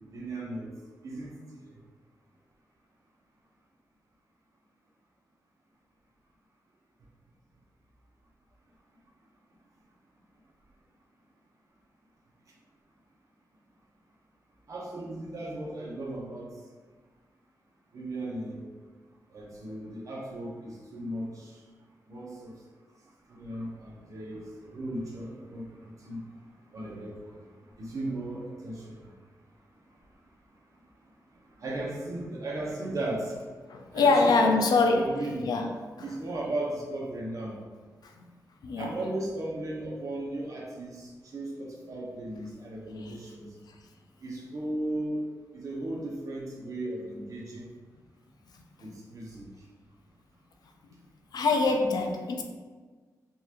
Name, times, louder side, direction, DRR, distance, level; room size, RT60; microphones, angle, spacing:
voice 1, 0.1-0.7 1.0-1.6 14.7-16.5 17.9-18.7 19.3-21.6 22.1-22.6 23.3-26.2 26.7-27.4 27.8-29.1 31.6-33.4 33.9-34.6 34.9-35.5 36.0-37.6 38.8-43.5 44.2-45.2 45.5-47.7 48.8-49.5, right 1 dB, 55° right, 0.9 m, -36 dB
voice 2, 33.7-35.7 38.6-38.9 51.3-52.4, left 3 dB, 90° left, 0.4 m, -24 dB
4.0 x 2.5 x 2.8 m
wide cardioid pair, 110°, 7 cm